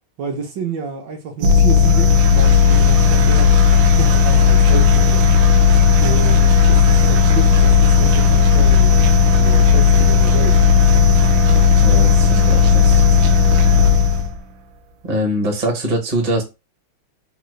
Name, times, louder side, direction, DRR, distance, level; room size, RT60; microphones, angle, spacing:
voice 1, 0.2-3.6 3.9-5.3 6.0-9.0 9.4-10.6, right 4 dB, 70° right, 1.2 m, -29 dB
sound 1, 1.4-14.4, left 6 dB, 85° right, 1.5 m, -13 dB
voice 2, 11.7-13.0 15.0-16.4, equal, 40° right, 0.5 m, -22 dB
3.8 x 2.1 x 3.1 m
omnidirectional pair, 2.3 m